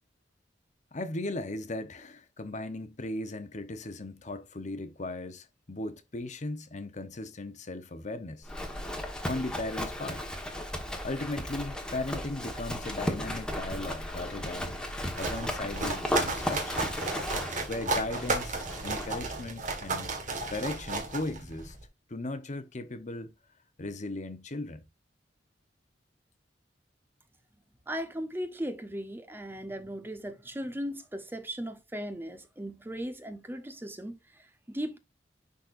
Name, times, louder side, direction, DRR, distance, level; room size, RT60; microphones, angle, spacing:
voice 1, 0.9-8.5 9.2-10.2 11.0-14.8 15.2-16.9 17.7-20.1 20.5-21.7 22.1-23.3 23.8-24.8, left 2 dB, 40° left, 0.8 m, -37 dB
Livestock farm animals working animals, 8.4-19.2, equal, 5° left, 1.3 m, -35 dB
sound 1, 14.9-21.8, right 3 dB, 45° right, 1.6 m, -34 dB
voice 2, 27.9-35.0, equal, 10° right, 0.7 m, -37 dB
10.5 x 4.2 x 2.5 m
head